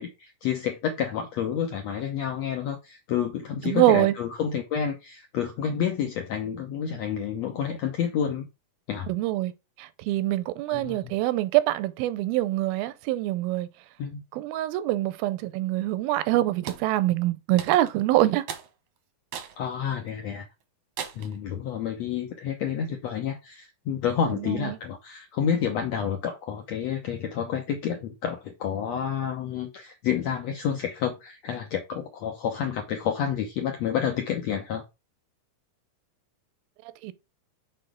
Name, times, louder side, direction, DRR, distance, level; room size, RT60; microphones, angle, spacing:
voice 1, 0.0-8.4 8.9-9.1 10.7-11.1 14.0-14.2 19.6-20.4 21.1-34.8, left 8 dB, 80° left, 1.5 m, -29 dB
voice 2, 3.6-4.1 9.1-9.5 9.8-13.7 14.3-18.5 24.3-24.8 37.0-37.1, right 15 dB, 90° right, 2.5 m, -25 dB
sound 1, 16.7-16.9 17.6-18.0 18.5-18.7 19.3-19.6 20.1-20.2 21.0-21.4, right 8 dB, 70° right, 1.6 m, -37 dB
6.8 x 4.1 x 5.0 m
omnidirectional pair, 4.2 m